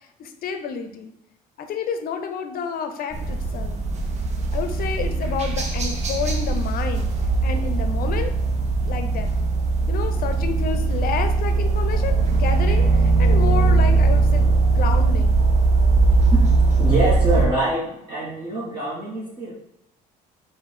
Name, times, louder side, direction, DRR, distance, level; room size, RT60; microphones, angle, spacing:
voice 1, 0.2-1.1 1.6-3.8 4.5-7.1 7.4-8.3 8.8-9.3 9.9-15.4, left 6 dB, 60° left, 7 dB, 0.6 m, -30 dB
sound 1, 3.1-17.5, right 3 dB, 40° right, 0.8 m, -20 dB
voice 2, 16.8-19.5, right 1 dB, 25° right, -9 dB, 1.7 m, -25 dB
4.3 x 2.6 x 4.3 m, 0.76 s
cardioid pair, 110°, 17 cm